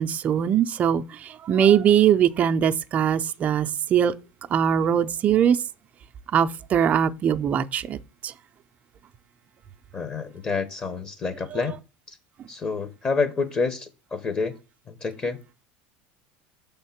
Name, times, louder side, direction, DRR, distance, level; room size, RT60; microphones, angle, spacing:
voice 1, 0.0-4.1 4.5-5.6 6.3-8.0 8.2-8.3, right 9 dB, 35° right, 0.5 m, -21 dB
voice 2, 9.9-11.7 12.1-12.2 12.5-14.5 14.9-15.4, left 4 dB, 25° left, 0.9 m, -28 dB
6.2 x 3.6 x 5.8 m
supercardioid pair, 125°, 5 cm